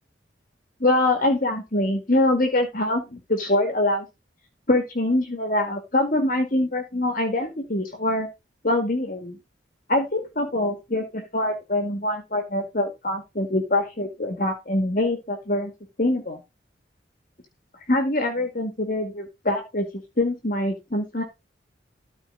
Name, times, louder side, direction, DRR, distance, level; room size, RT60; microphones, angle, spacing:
voice 1, 0.8-4.1 4.7-8.3 8.6-9.4 9.9-15.7 16.0-16.4 17.9-19.9 20.2-21.2, left 1 dB, 45° left, 5 dB, 2.1 m, -24 dB
13.5 x 5.1 x 4.0 m, 0.24 s
head